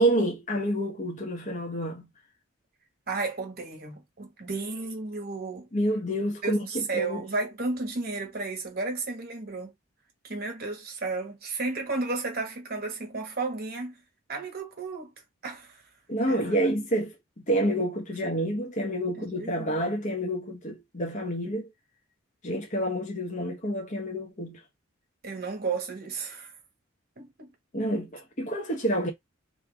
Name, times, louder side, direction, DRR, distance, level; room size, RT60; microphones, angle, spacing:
voice 1, 0.0-2.1 5.7-7.2 16.1-17.1 17.5-21.7 22.4-24.6 27.7-29.1, right 1 dB, 40° left, 1.1 m, -28 dB
voice 2, 3.1-5.7 6.4-9.7 10.2-14.0 14.3-15.1 15.4-15.8 16.3-16.6 19.1-19.8 25.2-26.5 27.2-27.5, right 3 dB, 50° right, 1.5 m, -33 dB
3.3 x 2.9 x 3.4 m
head